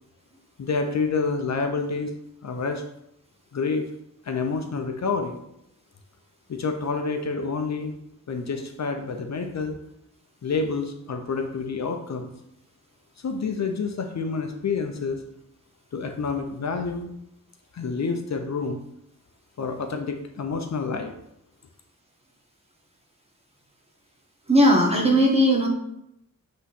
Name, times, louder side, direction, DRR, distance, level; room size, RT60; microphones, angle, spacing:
voice 1, 0.6-2.1 2.4-2.8 3.5-3.9 4.2-5.4 6.5-7.9 8.3-9.8 10.4-12.3 13.2-15.2 15.9-17.1 17.7-18.8 19.6-21.1, left 4 dB, 60° left, 5 dB, 0.8 m, -28 dB
voice 2, 24.5-25.7, equal, 20° right, -1 dB, 1.6 m, -18 dB
8.0 x 3.1 x 4.2 m, 0.79 s
wide cardioid pair, 100°, 31 cm